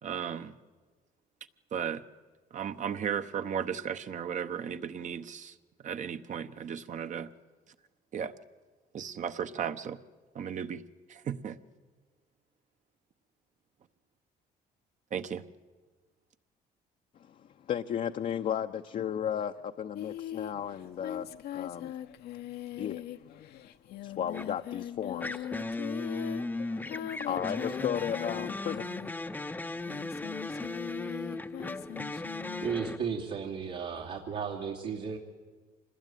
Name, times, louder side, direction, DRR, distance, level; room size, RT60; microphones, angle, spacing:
voice 1, 0.0-0.6 1.7-2.0 2.5-5.6 5.8-7.3 8.1-8.3 8.9-10.0 10.3-10.8 11.1-11.6 15.1-15.4, right 8 dB, 45° right, 1.0 m, -35 dB
voice 2, 17.1-21.9 22.8-23.1 24.0-26.5 26.8-28.9, left 9 dB, 50° left, 0.7 m, -35 dB
Singing, 20.0-29.3 29.8-32.7, left 11 dB, 70° left, 0.9 m, -41 dB
sound 1, 24.3-24.6 25.2-33.0, left 2 dB, 10° left, 0.7 m, -37 dB
voice 3, 32.2-35.2, right 6 dB, 75° right, 3.0 m, -35 dB
26.0 x 20.5 x 9.2 m
cardioid pair, 110°, 17 cm